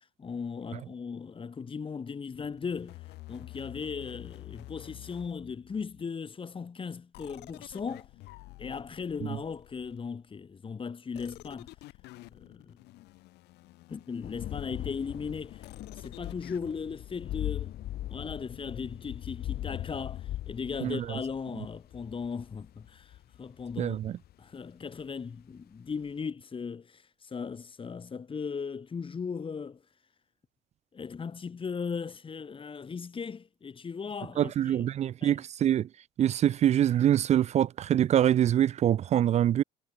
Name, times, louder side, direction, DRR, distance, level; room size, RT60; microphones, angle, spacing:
voice 1, 0.2-3.0 3.3-8.1 8.6-11.7 12.3-12.8 13.9-15.6 15.9-17.8 18.1-24.0 24.4-29.8 30.9-34.9 35.2-35.4, left 5 dB, 30° left, 3.7 m, -37 dB
sound 1, 2.3-6.0 7.1-10.2 11.1-16.7, left 18 dB, 85° left, 2.7 m, -50 dB
sound 2, 14.2-24.3, left 13 dB, 65° left, 2.5 m, -40 dB
voice 2, 20.8-21.2 23.8-24.2 34.4-35.9 36.2-39.6, right 11 dB, 40° right, 0.4 m, -25 dB
cardioid pair, 110°, 17 cm